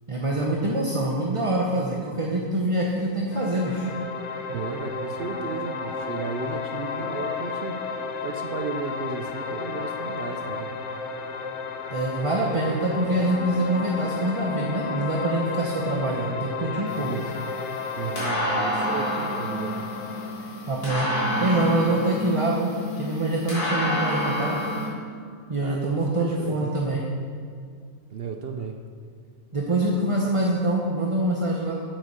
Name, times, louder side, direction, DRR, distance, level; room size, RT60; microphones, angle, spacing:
voice 1, 0.1-3.8 11.9-17.1 20.7-24.6 25.5-27.0 29.5-31.7, right 1 dB, 25° right, -2 dB, 0.7 m, -25 dB
sound 1, 3.3-20.3, left 4 dB, 55° left, 1.1 m, -33 dB
voice 2, 4.5-7.8 8.2-10.8 13.0-13.1 17.0-17.4 18.0-19.8 25.6-26.9 28.1-28.8, right 5 dB, 60° right, 5 dB, 0.6 m, -34 dB
sound 2, 16.9-24.9, equal, 80° left, 4.1 m, -29 dB
9.1 x 8.0 x 6.4 m, 2.2 s
omnidirectional pair, 1.6 m